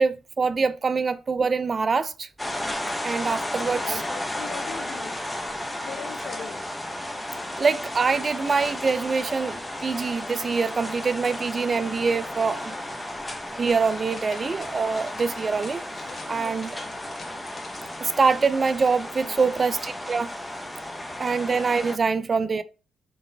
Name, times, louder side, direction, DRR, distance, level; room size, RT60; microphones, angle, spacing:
voice 1, 0.0-2.3 3.0-4.0 7.6-12.7 13.6-15.8 16.3-16.7 18.0-20.3 21.2-22.6, right 4 dB, 35° right, 0.3 m, -24 dB
sound 1, 2.4-22.0, left 1 dB, 10° left, 0.6 m, -34 dB
voice 2, 3.5-5.2 5.8-6.6 16.0-17.0 19.2-19.5, left 7 dB, 65° left, 0.4 m, -40 dB
sound 2, 8.8-9.6 9.9-10.4 10.6-11.5 11.8-12.0 13.6-18.1, left 3 dB, 40° left, 0.8 m, -49 dB
3.8 x 3.1 x 2.6 m
cardioid pair, 90°, 0 cm